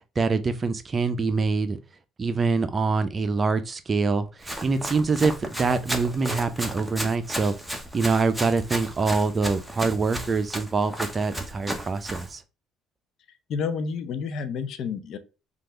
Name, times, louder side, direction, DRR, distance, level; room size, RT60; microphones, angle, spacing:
voice 1, 0.2-1.8 2.2-7.6 7.9-12.4, right 4 dB, 35° right, 0.5 m, -25 dB
Run, 4.4-12.3, equal, ahead, 0.8 m, -34 dB
voice 2, 13.5-15.2, left 5 dB, 60° left, 0.5 m, -30 dB
3.3 x 2.4 x 3.0 m
supercardioid pair, 75°, 0 cm